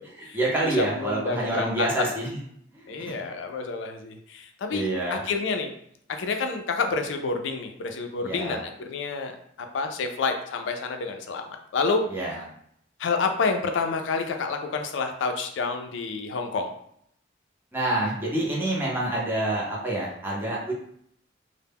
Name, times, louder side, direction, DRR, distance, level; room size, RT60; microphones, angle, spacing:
voice 1, 0.1-2.4 2.7-3.1 4.7-5.2 8.2-8.6 12.1-12.4 17.7-20.7, right 1 dB, 10° right, -5 dB, 0.6 m, -27 dB
voice 2, 0.8-2.1 2.9-5.7 6.1-9.3 9.7-11.4 11.7-12.0 13.0-16.7, left 4 dB, 75° left, 5 dB, 0.4 m, -28 dB
2.1 x 2.0 x 3.4 m, 0.69 s
head